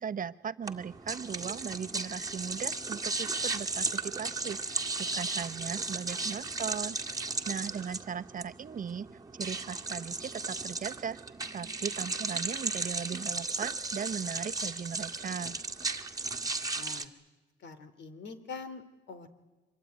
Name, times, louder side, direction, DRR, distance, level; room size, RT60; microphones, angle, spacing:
voice 1, 0.0-9.1 9.4-11.2 11.5-15.6, right 7 dB, 45° right, 11 dB, 1.1 m, -38 dB
sound 1, 0.6-17.0, right 3 dB, 20° right, 1.8 m, -35 dB
voice 2, 16.7-17.1 17.6-19.3, left 4 dB, 65° left, 10 dB, 3.1 m, -44 dB
25.5 x 22.5 x 9.4 m, 1.2 s
cardioid pair, 90°, 20 cm